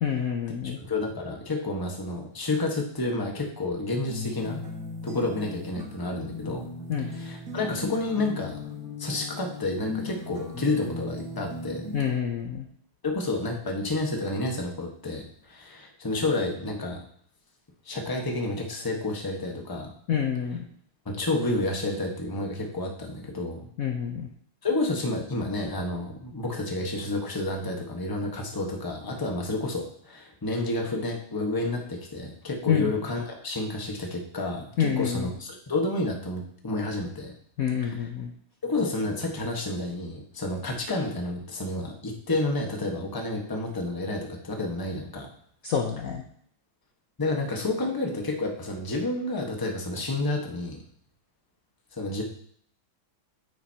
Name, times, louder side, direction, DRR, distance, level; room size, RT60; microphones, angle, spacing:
voice 1, 0.0-0.8 6.9-7.1 11.9-12.7 20.1-20.7 23.8-24.3 32.7-32.9 34.8-35.3 37.6-38.3 45.6-46.2, left 8 dB, 60° left, 3 dB, 1.0 m, -27 dB
voice 2, 0.8-4.6 5.0-6.6 7.2-8.6 9.0-11.8 13.0-17.0 17.8-19.9 21.0-23.6 24.6-37.3 37.8-38.0 38.6-45.3 47.2-50.8 51.9-52.2, left 2 dB, 15° left, 1 dB, 1.1 m, -30 dB
sound 1, 4.1-12.1, left 3 dB, 50° right, 2.2 m, -37 dB
9.4 x 9.2 x 2.9 m, 0.63 s
omnidirectional pair, 2.2 m